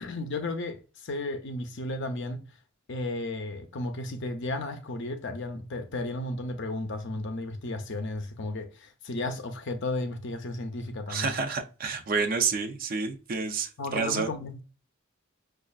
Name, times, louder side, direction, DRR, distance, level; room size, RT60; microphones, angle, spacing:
voice 1, 0.0-2.4 2.9-11.4 13.8-14.6, left 2 dB, 55° left, 0.6 m, -34 dB
voice 2, 11.1-14.3, right 5 dB, 40° right, 0.5 m, -29 dB
5.3 x 2.4 x 2.3 m
head